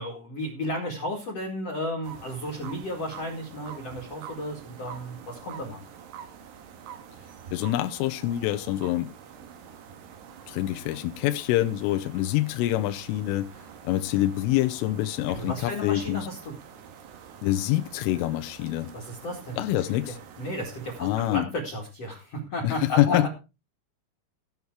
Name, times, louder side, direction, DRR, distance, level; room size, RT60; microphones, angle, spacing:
voice 1, 0.0-5.8 15.3-16.5 18.9-19.6 20.4-23.3, left 1 dB, 45° left, 2.1 m, -33 dB
sound 1, 2.0-21.4, right 7 dB, 65° right, 3.2 m, -46 dB
voice 2, 7.5-9.1 10.5-13.5 13.8-16.2 17.4-18.9 19.6-20.2 21.0-21.5 22.6-23.3, left 14 dB, 85° left, 3.2 m, -26 dB
16.0 x 7.0 x 4.7 m
omnidirectional pair, 5.8 m